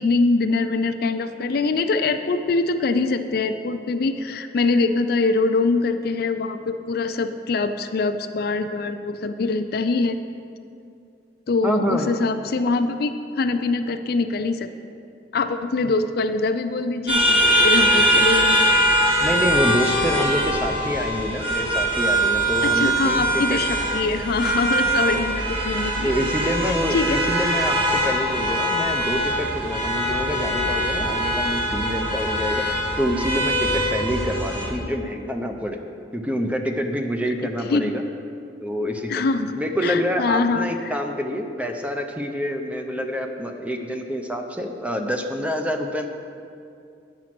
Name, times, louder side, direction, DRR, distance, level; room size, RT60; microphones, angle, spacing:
voice 1, 0.0-10.2 11.5-14.7 15.3-18.7 22.6-26.1 26.9-27.2 37.7-38.0 39.1-39.5 39.8-40.9, left 3 dB, 55° left, 9 dB, 0.4 m, -23 dB
voice 2, 11.6-12.1 15.8-15.9 19.2-23.6 25.3-25.4 26.0-32.7 33.0-35.8 36.1-38.0 38.6-39.2 39.6-46.1, equal, 10° right, 4 dB, 0.6 m, -27 dB
sound 1, 17.1-34.7, right 1 dB, 30° right, 2.0 m, -22 dB
9.3 x 6.1 x 5.9 m, 2.5 s
head